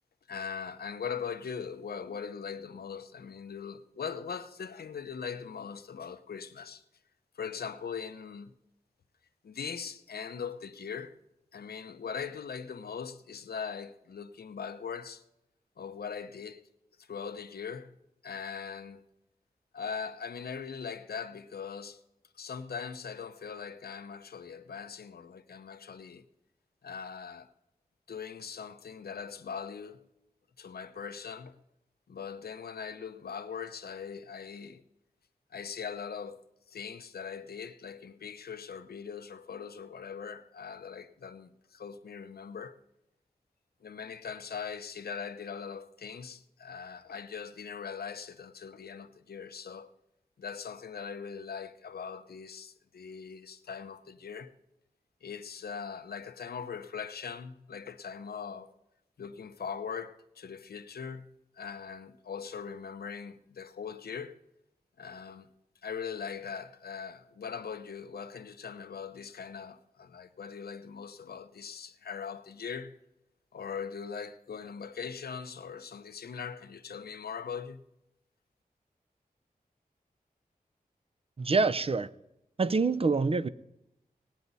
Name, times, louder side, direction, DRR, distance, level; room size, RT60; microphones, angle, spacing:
voice 1, 0.3-6.8 7.3-8.5 9.4-11.1 11.5-15.2 15.8-16.6 17.0-17.9 18.2-19.0 19.7-22.0 22.3-26.2 26.8-27.5 28.1-30.0 30.6-31.6 32.1-34.8 35.5-42.8 43.8-49.9 50.4-54.5 55.2-58.7 59.2-64.4 65.0-65.5 65.8-73.0 73.5-77.8, left 6 dB, 85° left, 0.8 m, -41 dB
voice 2, 81.4-82.1 82.6-83.5, right 4 dB, 40° right, 0.6 m, -26 dB
19.5 x 9.1 x 4.1 m
wide cardioid pair, 60°, 16 cm